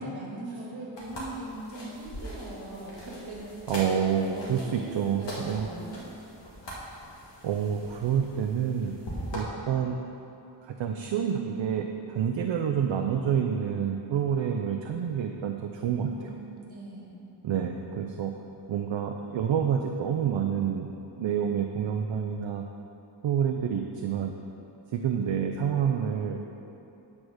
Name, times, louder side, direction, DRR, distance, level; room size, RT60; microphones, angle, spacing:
voice 1, 0.0-3.7 4.3-6.1 16.0-17.2, right 1 dB, 60° right, -3 dB, 1.9 m, -40 dB
sound 1, 1.0-9.4, equal, 70° left, 1.8 m, -41 dB
voice 2, 3.7-5.7 7.4-8.9 9.3-10.0 10.6-16.3 17.4-18.3 18.7-22.6 23.2-24.3 24.9-26.4, right 8 dB, 75° right, 4 dB, 0.6 m, -28 dB
8.6 x 4.8 x 6.3 m, 2.9 s
wide cardioid pair, 160°, 45 cm